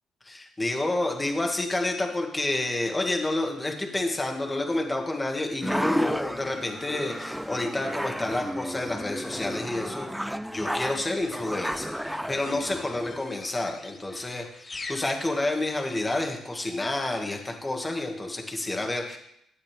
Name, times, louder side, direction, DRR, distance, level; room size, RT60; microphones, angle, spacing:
voice 1, 0.3-11.9 12.3-19.2, left 2 dB, 20° left, 2 dB, 1.9 m, -29 dB
sound 1, 5.6-13.2, equal, ahead, 0.4 m, -33 dB
sound 2, 11.0-16.2, left 3 dB, 35° left, 1.1 m, -45 dB
12.0 x 8.4 x 3.4 m, 0.76 s
cardioid pair, 90°, 0 cm